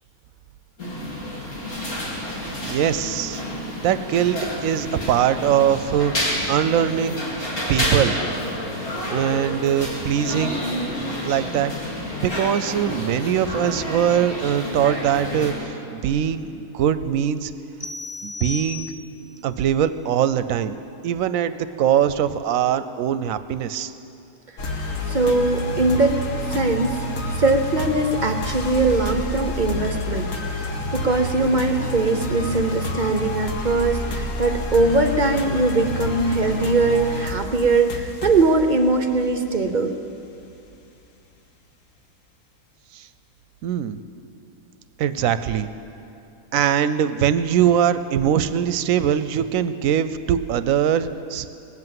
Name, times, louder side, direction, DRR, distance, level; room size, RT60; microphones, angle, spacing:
sound 1, 0.8-15.5, left 1 dB, 80° left, 3.3 m, -29 dB
voice 1, 2.6-3.4 3.8-7.3 7.7-8.2 9.1-10.6 11.2-11.7 12.2-17.5 18.2-18.9 19.4-20.7 21.0-23.9 42.9-43.1 43.6-44.0 45.0-45.7 46.5-51.5, right 9 dB, 75° right, 13 dB, 0.9 m, -22 dB
sound 2, 17.8-19.3, left 3 dB, 30° left, 0.8 m, -34 dB
sound 3, 24.6-40.4, left 1 dB, 65° left, 1.5 m, -29 dB
voice 2, 25.1-26.2 26.5-27.0 27.3-40.0, right 3 dB, 45° right, 6 dB, 0.6 m, -21 dB
19.0 x 7.9 x 7.7 m, 2.7 s
omnidirectional pair, 1.5 m